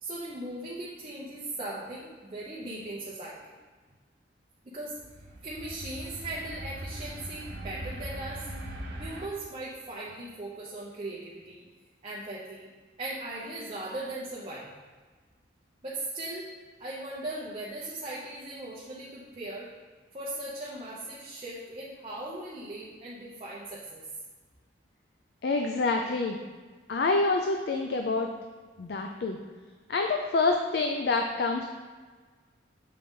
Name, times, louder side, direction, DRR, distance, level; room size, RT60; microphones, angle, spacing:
voice 1, 0.0-3.5 4.6-5.0 5.4-8.5 9.0-11.7 12.0-12.7 13.0-14.7 15.8-16.5 16.8-19.7 20.1-24.0, right 1 dB, 30° right, -6 dB, 0.7 m, -38 dB
sound 1, 4.9-9.3, right 1 dB, 65° right, 0.7 m, -40 dB
voice 2, 25.4-26.4 26.9-28.3 28.8-29.4 29.9-31.6, left 3 dB, 60° left, 3 dB, 0.4 m, -27 dB
7.5 x 4.0 x 3.6 m, 1.4 s
head